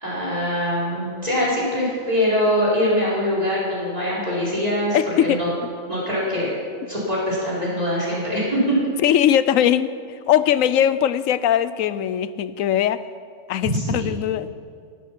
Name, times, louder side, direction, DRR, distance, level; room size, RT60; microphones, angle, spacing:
voice 1, 0.0-5.5 5.9-6.5 6.9-8.8 13.6-14.1, equal, 25° right, -7 dB, 4.4 m, -23 dB
voice 2, 4.9-5.4 9.0-9.9 10.3-13.0 13.5-14.5, left 10 dB, 75° left, 14 dB, 1.0 m, -20 dB
14.5 x 12.0 x 5.9 m, 2.3 s
omnidirectional pair, 1.4 m